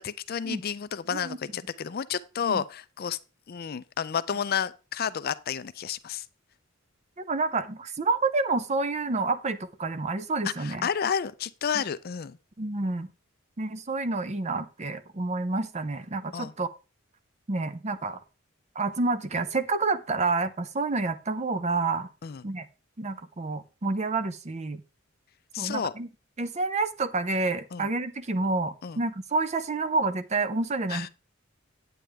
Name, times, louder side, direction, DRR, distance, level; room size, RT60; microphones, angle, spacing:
voice 1, 0.0-3.2 3.5-6.3 10.4-12.4 16.3-16.5 22.2-22.4 25.5-25.9 27.7-27.9 28.8-29.0 30.9-31.1, left 7 dB, 45° left, 0.4 m, -31 dB
voice 2, 7.2-10.9 12.6-13.1 13.6-16.7 17.5-18.2 18.8-22.1 22.4-22.7 23.0-24.8 25.6-26.1 26.4-31.1, right 3 dB, 35° right, 0.6 m, -29 dB
9.1 x 8.8 x 3.4 m
head